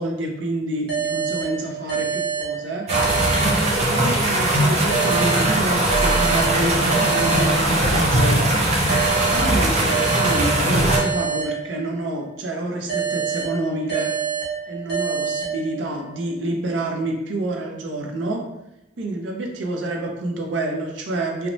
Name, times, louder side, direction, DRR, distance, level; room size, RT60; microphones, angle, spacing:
voice 1, 0.0-2.9 3.7-8.4 9.0-14.2 14.7-18.4 19.0-21.5, right 1 dB, 85° right, 2 dB, 0.5 m, -28 dB
Emergency alarm with Reverb, 0.9-4.2 4.9-8.2 8.9-12.2 12.9-16.2, right 7 dB, 60° right, 0.9 m, -27 dB
sound 1, 2.9-11.0, right 1 dB, 35° right, 0.5 m, -20 dB
2.9 x 2.1 x 2.6 m, 0.89 s
head